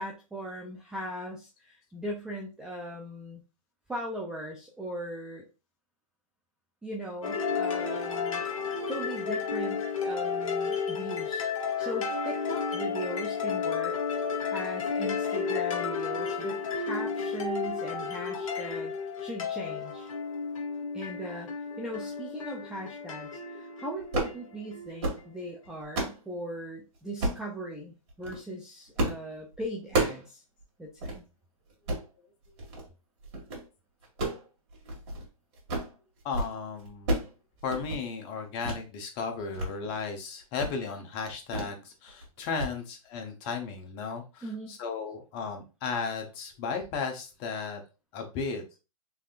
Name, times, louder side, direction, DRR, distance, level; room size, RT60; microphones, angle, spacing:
voice 1, 0.0-3.4 3.9-5.5 6.8-8.4 8.9-11.5 11.8-13.9 14.5-18.9 19.2-20.1 20.9-21.5 21.8-30.4 30.8-31.2 44.4-44.7, right 1 dB, 5° right, -3 dB, 0.3 m, -39 dB
sound 1, 7.2-25.1, left 5 dB, 65° left, 0.9 m, -32 dB
sound 2, 24.0-24.4 24.8-25.2 25.6-26.2 27.2-27.5 28.1-28.4 29.0-29.2 29.5-30.3 30.6-30.7 31.0-31.2 31.7-32.1 32.6-32.9 33.2-33.6 34.0-35.3 35.5-35.9 36.2-36.5 36.8-37.3 37.6-38.0 38.6-38.8 39.2-39.7 40.0-40.2 40.6-40.8 41.5-41.8 42.1-42.3 42.6-42.7, right 2 dB, 50° right, 1.9 m, -31 dB
voice 2, 36.2-37.2 37.6-47.8 48.1-48.8, left 5 dB, 30° left, 4 dB, 0.8 m, -35 dB
3.5 x 3.2 x 2.4 m, 0.30 s
hypercardioid pair, 140°, 18 cm